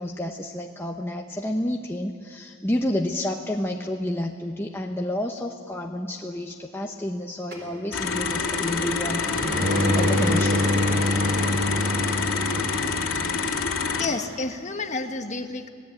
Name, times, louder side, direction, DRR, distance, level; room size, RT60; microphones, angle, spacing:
voice 1, 0.0-9.6 9.9-10.7, left 1 dB, 10° left, 1 dB, 0.9 m, -30 dB
sound 1, 7.5-13.1, left 1 dB, 45° right, 4.1 m, -26 dB
sound 2, 7.9-14.1, left 5 dB, 65° left, 2.4 m, -27 dB
voice 2, 14.0-15.7, left 3 dB, 30° left, 6 dB, 1.4 m, -30 dB
27.0 x 18.0 x 8.7 m, 2.3 s
head